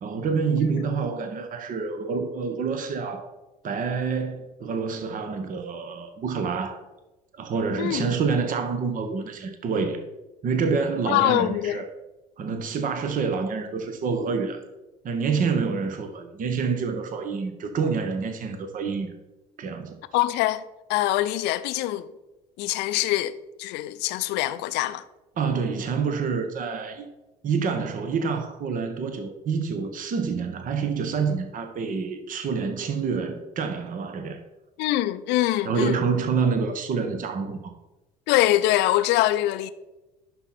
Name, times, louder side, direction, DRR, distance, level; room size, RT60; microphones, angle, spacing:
voice 1, 0.0-3.3 3.6-6.8 7.3-10.0 10.4-11.9 12.4-14.6 15.0-19.1 19.6-20.0 25.4-27.1 27.4-34.4 35.6-37.6, right 5 dB, 45° right, 1.1 m, -27 dB
voice 2, 7.8-8.1 11.1-11.8 20.1-20.6 20.9-22.1 22.6-23.3 23.6-25.0 34.8-36.0 38.3-39.7, left 14 dB, 60° left, 0.5 m, -23 dB
11.0 x 4.3 x 4.3 m
hypercardioid pair, 60°, 20 cm